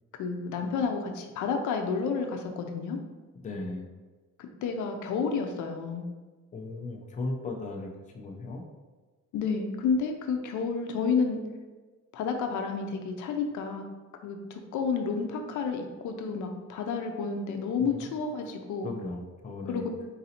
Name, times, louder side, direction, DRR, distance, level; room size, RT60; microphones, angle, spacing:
voice 1, 0.2-3.0 4.4-6.0 9.3-11.4 12.1-13.8 14.2-18.9 19.7-19.8, left 5 dB, 85° left, 5 dB, 0.6 m, -30 dB
voice 2, 3.4-3.9 6.5-8.6 17.8-18.1 18.8-19.9, left 2 dB, 25° left, 1 dB, 0.5 m, -36 dB
3.9 x 2.7 x 4.2 m, 1.3 s
cardioid pair, 160°, 29 cm